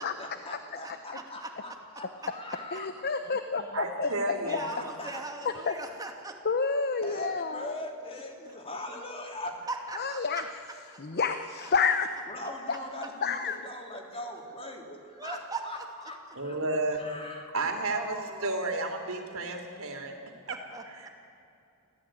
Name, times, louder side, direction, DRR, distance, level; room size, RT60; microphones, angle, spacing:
voice 1, 0.0-2.9 4.4-5.2 7.0-9.6 12.3-16.6 16.9-17.5, left 1 dB, 25° left, 2 dB, 3.2 m, -41 dB
voice 2, 2.7-4.1 5.7-5.8 6.4-7.6 10.0-10.4 11.0-12.1 13.2-13.5, left 5 dB, 45° left, 9 dB, 0.9 m, -29 dB
voice 3, 3.7-4.6 16.4-17.0 17.5-20.2 20.5-20.6 20.9-21.1, right 2 dB, 65° right, 4 dB, 3.5 m, -32 dB
voice 4, 4.2-6.4 9.7-10.5 10.9-11.2 15.2-15.6 17.9-18.7 20.5-21.1, right 3 dB, 15° right, 3 dB, 2.6 m, -40 dB
25.0 x 17.0 x 9.2 m, 2.7 s
head